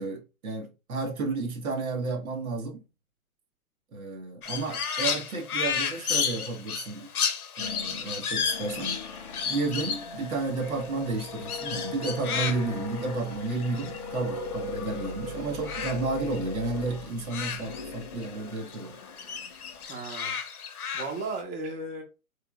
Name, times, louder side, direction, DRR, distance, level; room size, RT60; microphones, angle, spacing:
voice 1, 0.0-2.8 3.9-7.1 7.6-9.0 9.4-19.0, right 3 dB, 70° right, 1.1 m, -32 dB
Crow, 4.4-15.1 15.4-18.4 18.7-21.4, left 7 dB, 80° left, 0.8 m, -33 dB
sound 1, 7.6-19.8, left 3 dB, 25° left, 0.3 m, -40 dB
voice 2, 19.9-20.4 20.9-22.0, right 3 dB, 20° right, 1.0 m, -35 dB
3.3 x 3.1 x 2.3 m
hypercardioid pair, 130°, 44 cm